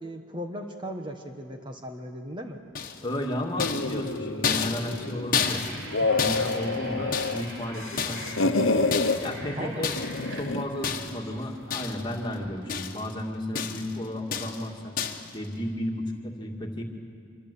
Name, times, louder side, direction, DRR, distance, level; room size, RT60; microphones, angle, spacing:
voice 1, 0.0-2.6 6.0-6.2 9.6-9.9, equal, 25° right, 4 dB, 1.3 m, -37 dB
sound 1, 2.7-3.2 3.6-7.6 8.0-8.5 8.9-9.4 9.8-10.3 10.8-11.3 11.7-12.2 12.4-13.1 13.5-14.0 14.3-14.7 15.0-15.3, left 6 dB, 45° left, 1.5 m, -31 dB
voice 2, 3.0-5.6 6.1-8.9 9.2-9.9 10.2-14.9 15.3-16.8, left 1 dB, 20° left, 2 dB, 2.2 m, -33 dB
sound 2, 3.5-5.3 5.7-7.4 7.7-9.2 10.0-10.7, left 3 dB, 80° left, 1.1 m, -28 dB
sound 3, 5.3-12.8, equal, 60° right, 3.9 m, -42 dB
26.0 x 24.0 x 8.4 m, 2.3 s
head